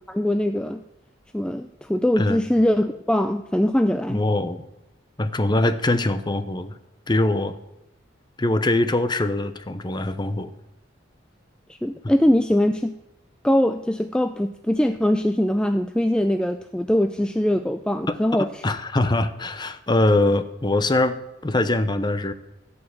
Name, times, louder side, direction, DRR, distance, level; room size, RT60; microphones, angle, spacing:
voice 1, 0.1-0.8 1.3-4.2 11.7-12.9 13.4-18.5, left 1 dB, 5° left, 8 dB, 0.3 m, -22 dB
voice 2, 4.1-4.6 5.2-6.7 7.1-7.6 8.4-10.5 18.1-21.2 21.4-22.3, left 2 dB, 25° left, 11 dB, 0.7 m, -22 dB
15.5 x 5.4 x 8.0 m, 0.90 s
head